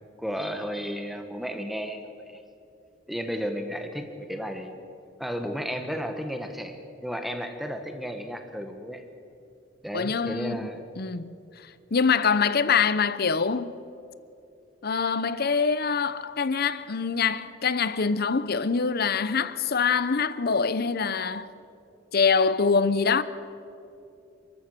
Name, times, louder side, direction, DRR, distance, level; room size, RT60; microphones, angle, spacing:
voice 1, 0.2-2.0 2.3-2.4 3.1-4.7 5.2-9.0 9.8-10.8, equal, ahead, 1.7 m, -33 dB
voice 2, 9.9-10.7 11.0-11.3 11.9-13.7 14.8-21.5 22.1-23.2, left 5 dB, 55° left, 0.8 m, -24 dB
30.0 x 14.5 x 6.8 m
head